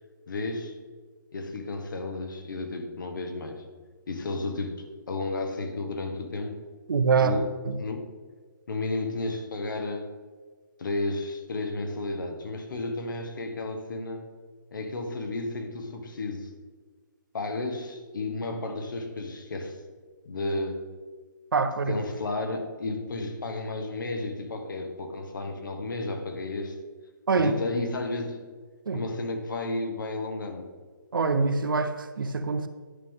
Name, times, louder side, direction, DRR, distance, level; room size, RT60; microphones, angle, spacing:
voice 1, 0.3-0.8 1.3-3.6 4.1-6.6 7.2-7.4 7.8-8.0 8.7-10.1 10.8-14.2 14.7-16.5 17.3-19.8 20.2-20.9 21.9-26.8 27.4-28.4 28.9-30.6, left 2 dB, 70° left, 5 dB, 1.3 m, -32 dB
voice 2, 6.9-7.4 7.7-7.8 21.5-22.0 27.3-27.6 28.9-29.0 31.1-32.7, right 4 dB, 80° right, 10 dB, 0.7 m, -24 dB
10.0 x 5.5 x 3.7 m, 1.4 s
hypercardioid pair, 155°, 11 cm